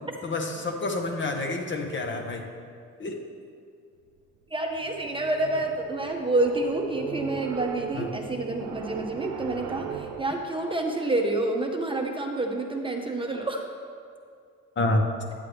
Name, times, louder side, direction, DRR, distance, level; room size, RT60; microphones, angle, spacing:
voice 1, 0.2-2.4 3.0-3.2 7.9-8.1 14.8-15.1, left 2 dB, 40° left, 3 dB, 1.0 m, -28 dB
voice 2, 4.5-13.7, right 2 dB, 15° right, 2 dB, 0.8 m, -28 dB
sound 1, 4.7-10.2, right 8 dB, 90° right, 0.8 m, -38 dB
9.8 x 7.5 x 3.4 m, 2.3 s
cardioid pair, 90°, 30 cm